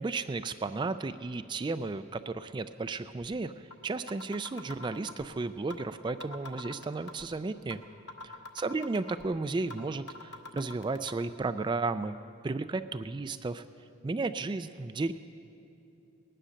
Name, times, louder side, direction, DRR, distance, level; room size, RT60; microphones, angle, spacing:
voice 1, 0.0-3.5 3.8-7.8 8.2-12.2 12.4-13.6 14.0-15.1, right 3 dB, 25° right, 11 dB, 0.3 m, -33 dB
sound 1, 3.7-3.8 4.1-5.3 5.7-5.8 6.1-7.3 7.7-7.8 8.1-9.3 9.7-9.8 10.1-11.1, left 2 dB, 60° left, 1.1 m, -43 dB
19.0 x 10.0 x 6.5 m, 2.7 s
head